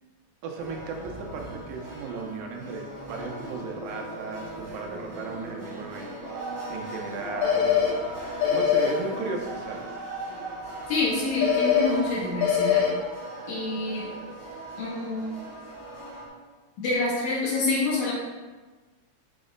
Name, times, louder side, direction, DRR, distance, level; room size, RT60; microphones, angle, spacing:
voice 1, 0.4-8.0 8.5-9.9, right 4 dB, 90° right, 1 dB, 2.0 m, -36 dB
sound 1, 0.5-16.3, right 2 dB, 45° right, 0.9 m, -38 dB
sound 2, 7.4-7.9 8.4-8.9 11.4-11.9 12.4-12.9, left 8 dB, 60° left, 1.9 m, -22 dB
voice 2, 10.9-12.9 13.5-14.1 14.8-15.3 16.8-18.1, left 3 dB, 80° left, -7 dB, 2.4 m, -27 dB
5.8 x 2.1 x 3.8 m, 1.3 s
omnidirectional pair, 3.4 m